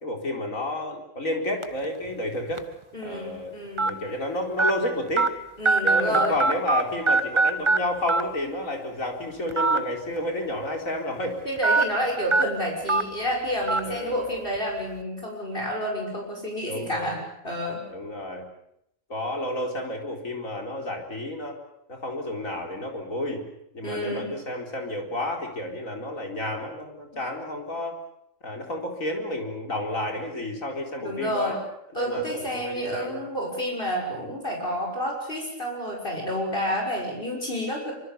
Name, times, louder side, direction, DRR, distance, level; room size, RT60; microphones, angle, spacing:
voice 1, 0.0-2.6 3.0-3.5 3.8-5.3 5.8-11.4 13.8-14.2 16.6-17.1 17.9-18.5 19.1-21.6 21.9-23.5 23.7-28.0 28.4-31.6 31.9-33.2, left 1 dB, 85° left, 2 dB, 4.8 m, -31 dB
sound 1, 1.6-1.8 2.6-2.7 3.8-3.9 4.6-4.7 5.2-5.3 5.6-6.8 7.1-7.8 8.1-8.2 9.5-9.8 10.2-10.3 11.6-11.8 12.3-12.4 12.9-13.0 13.7-13.8, right 3 dB, 25° right, 1.2 m, -20 dB
voice 2, 2.9-4.0 5.6-6.4 11.4-17.8 23.8-24.3 31.0-31.6 31.9-37.9, equal, 40° left, -1 dB, 6.5 m, -29 dB
25.5 x 25.0 x 7.0 m, 0.77 s
omnidirectional pair, 1.4 m